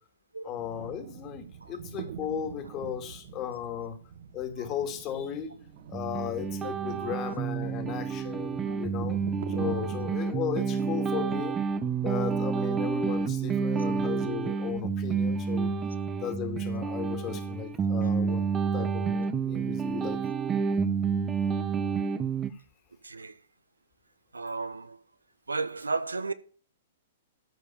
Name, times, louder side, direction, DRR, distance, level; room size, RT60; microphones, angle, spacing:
voice 1, 0.4-4.0 4.3-5.6 5.9-9.2 9.5-11.5 12.0-15.7 16.2-18.4 18.7-20.2, left 9 dB, 30° left, 2.3 m, -36 dB
sound 1, 0.6-12.5, right 8 dB, 60° right, 1.3 m, -45 dB
sound 2, 5.9-22.5, right 5 dB, 20° right, 0.9 m, -29 dB
voice 2, 23.0-23.4 24.3-25.0 25.5-26.3, right 3 dB, 90° right, 1.0 m, -34 dB
13.5 x 4.9 x 7.0 m
hypercardioid pair, 115°, 0 cm